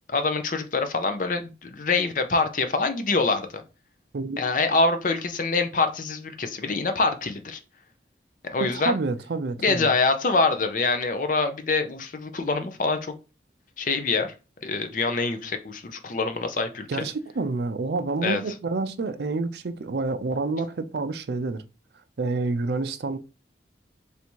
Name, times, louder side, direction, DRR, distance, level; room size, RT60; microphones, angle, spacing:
voice 1, 0.1-3.6 4.4-7.6 8.5-8.9 9.6-13.1 13.8-14.3 14.6-16.9 18.2-18.4, left 3 dB, 45° left, 0.6 m, -25 dB
voice 2, 8.8-9.9 16.9-21.6 22.2-23.2, right 3 dB, 65° right, 0.4 m, -28 dB
3.4 x 2.7 x 4.5 m
head